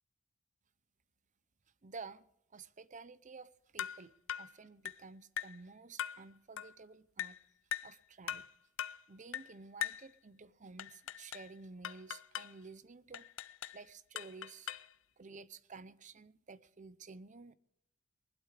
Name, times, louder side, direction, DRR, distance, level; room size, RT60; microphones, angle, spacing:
voice 1, 1.8-7.4 7.8-8.5 9.1-13.2 13.7-14.7 15.2-17.5, right 4 dB, 40° right, 0.7 m, -52 dB
sound 1, 3.8-4.0 4.3-4.5 4.9-5.0 5.4-5.6 6.0-6.2 6.6-6.7 7.2-7.4 7.7-8.0 8.3-8.5 8.8-9.0 9.3-9.5 9.8-10.1 10.8-11.5 11.8-12.5 13.1-13.8 14.2-14.9, left 10 dB, 70° left, 0.6 m, -41 dB
20.5 x 12.0 x 4.9 m
head